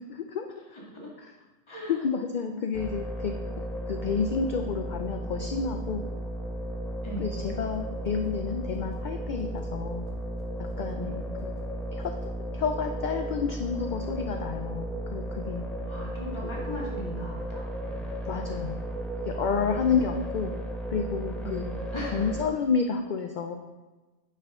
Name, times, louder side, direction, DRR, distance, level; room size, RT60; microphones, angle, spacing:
voice 1, 0.1-0.5 1.2-1.3 1.9-3.4 3.9-6.1 7.2-10.0 10.8-11.5 11.9-12.1 12.5-15.7 16.4-16.8 18.3-18.8 19.3-20.5 20.9-21.6 22.1-23.6, left 5 dB, 55° left, 5 dB, 0.5 m, -30 dB
voice 2, 1.7-2.1 2.4-2.6 7.0-7.3 11.0-11.2 15.9-18.1 19.7-20.0 21.4-22.3, equal, 25° left, -4 dB, 1.9 m, -39 dB
sound 1, 2.7-22.4, equal, ahead, 0.8 m, -34 dB
sound 2, 7.4-7.5 7.7-7.8 8.0-8.3 8.7-9.0 9.4-9.6 10.1-10.2 10.4-10.5 10.7-10.9 11.4-11.6 12.0-12.3, right 1 dB, 40° right, 1.6 m, -53 dB
9.2 x 5.6 x 3.7 m, 1.2 s
omnidirectional pair, 1.2 m